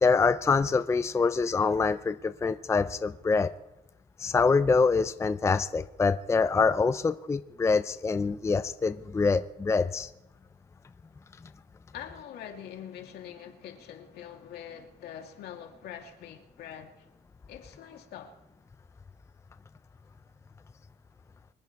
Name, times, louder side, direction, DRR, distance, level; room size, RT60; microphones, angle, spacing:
voice 1, 0.0-3.5 4.2-10.1, left 4 dB, 15° left, 0.5 m, -25 dB
voice 2, 11.9-17.1 17.5-18.4, left 9 dB, 75° left, 2.4 m, -44 dB
25.0 x 9.4 x 4.7 m
cardioid pair, 110°, 17 cm